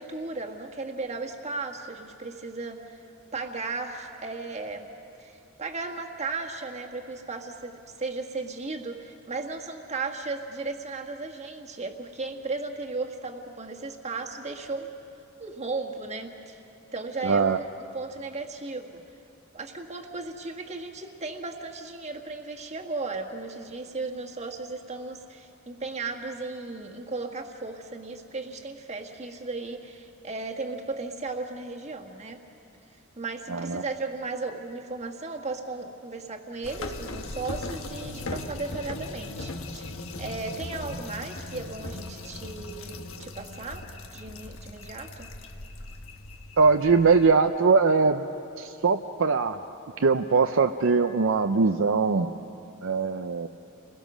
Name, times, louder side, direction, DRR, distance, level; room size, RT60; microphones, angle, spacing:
voice 1, 0.0-3.1 3.3-4.9 5.2-14.9 15.4-16.6 16.9-19.0 19.5-32.4 33.2-43.8 44.1-45.3, right 3 dB, 30° right, 3 dB, 1.7 m, -35 dB
voice 2, 17.2-17.6 33.5-33.8 46.6-48.2 48.6-49.6 50.0-52.3 52.8-53.5, right 4 dB, 65° right, 6 dB, 0.6 m, -21 dB
sound 1, 36.6-47.3, left 2 dB, 65° left, 1.3 m, -38 dB
30.0 x 21.5 x 6.2 m, 2.8 s
head